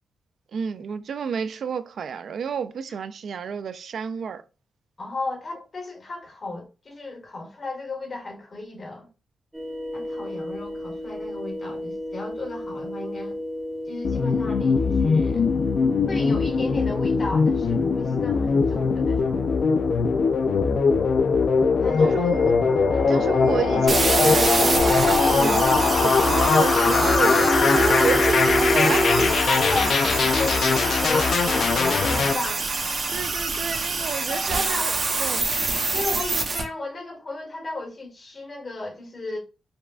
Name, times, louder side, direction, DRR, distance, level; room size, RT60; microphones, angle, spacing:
voice 1, 0.5-4.4 22.0-22.6 23.1-29.1 33.1-35.5, right 6 dB, 70° right, 0.3 m, -30 dB
voice 2, 5.0-9.1 9.9-13.4 13.9-15.5 16.1-19.4 21.8-22.3 22.9-23.3 29.1-32.7 34.3-34.9 35.9-39.4, left 2 dB, 40° left, 1.6 m, -34 dB
sound 1, 9.5-29.3, equal, 5° right, 0.9 m, -30 dB
sound 2, 14.0-32.3, left 5 dB, 65° left, 0.4 m, -21 dB
sound 3, 23.9-36.6, right 3 dB, 45° right, 0.8 m, -26 dB
5.2 x 2.2 x 2.4 m
wide cardioid pair, 115°, 0 cm